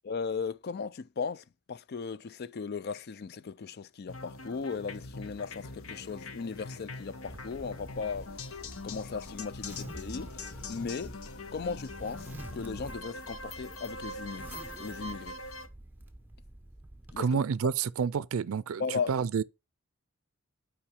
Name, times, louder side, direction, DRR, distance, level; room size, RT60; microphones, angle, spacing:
voice 1, 0.0-8.3 8.8-11.1 11.5-15.4 17.1-17.4 18.8-19.2, left 5 dB, 50° left, 0.4 m, -37 dB
sound 1, 4.1-15.7, left 2 dB, 80° left, 1.0 m, -43 dB
Zipper (clothing), 7.2-17.2, right 1 dB, 10° right, 0.8 m, -48 dB
voice 2, 17.2-19.4, right 6 dB, 80° right, 0.4 m, -29 dB
5.8 x 4.8 x 6.3 m
head